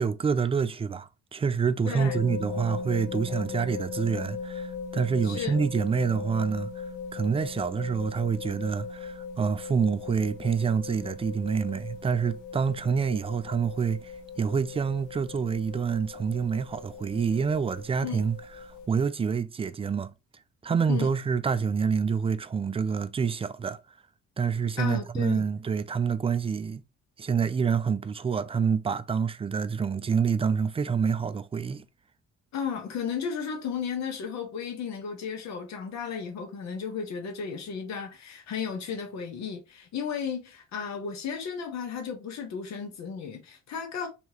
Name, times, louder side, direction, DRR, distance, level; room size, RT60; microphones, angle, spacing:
voice 1, 0.0-6.8 7.1-14.1 14.4-18.4 18.6-20.1 20.6-23.8 24.4-26.8 27.2-31.9, right 6 dB, 20° right, 0.3 m, -27 dB
voice 2, 1.8-2.2 5.2-5.6 18.0-18.2 20.9-21.1 24.8-25.5 32.5-44.1, left 6 dB, 70° left, 1.2 m, -34 dB
sound 1, 2.0-18.9, left 5 dB, 85° left, 0.8 m, -39 dB
3.4 x 3.0 x 2.8 m
cardioid pair, 80°, 29 cm